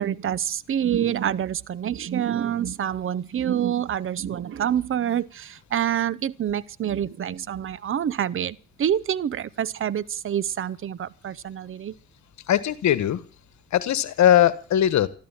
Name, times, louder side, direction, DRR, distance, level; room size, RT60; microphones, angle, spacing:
voice 1, 0.0-11.9, right 10 dB, 45° right, 0.8 m, -27 dB
voice 2, 12.5-13.2 13.7-15.1, left 11 dB, 65° left, 1.4 m, -20 dB
14.0 x 12.5 x 7.2 m
cardioid pair, 90°, 30 cm